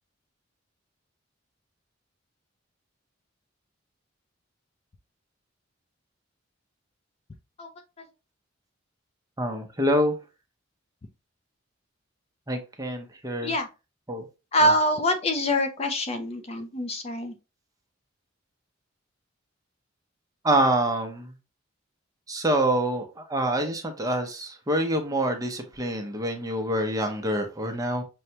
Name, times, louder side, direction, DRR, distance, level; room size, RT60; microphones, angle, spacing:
voice 1, 9.4-10.2 12.5-13.5 14.1-14.2 14.6-14.7 20.4-21.3 22.3-28.0, right 1 dB, 15° right, 4 dB, 0.6 m, -26 dB
voice 2, 14.5-17.3, equal, 30° left, 6 dB, 0.5 m, -25 dB
6.2 x 2.2 x 2.8 m, 0.30 s
head